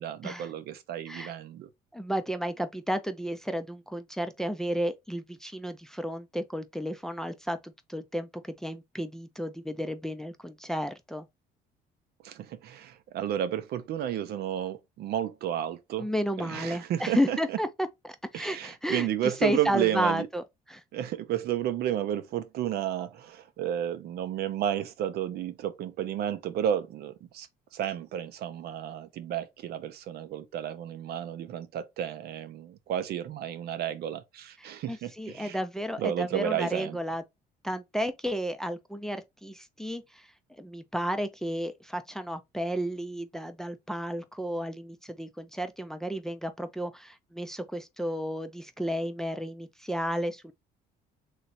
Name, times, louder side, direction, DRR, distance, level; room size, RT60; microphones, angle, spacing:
voice 1, 0.0-1.7 12.2-16.1 16.4-17.6 18.3-20.3 20.9-35.6 36.0-37.0, right 11 dB, 70° right, 0.7 m, -32 dB
voice 2, 1.9-11.3 16.0-20.8 34.6-37.2 37.6-40.3 40.6-50.5, equal, 5° left, 0.5 m, -32 dB
3.2 x 2.6 x 4.1 m
cardioid pair, 110°, 17 cm